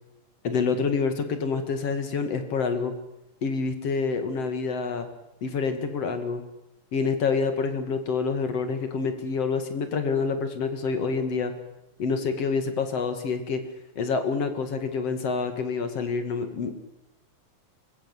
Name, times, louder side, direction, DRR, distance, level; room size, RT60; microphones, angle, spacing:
voice 1, 0.4-2.9 3.4-5.1 5.4-6.4 6.9-11.5 12.0-13.6 14.0-16.8, left 5 dB, 55° left, 8 dB, 3.1 m, -27 dB
24.5 x 21.0 x 8.2 m, 0.90 s
omnidirectional pair, 3.3 m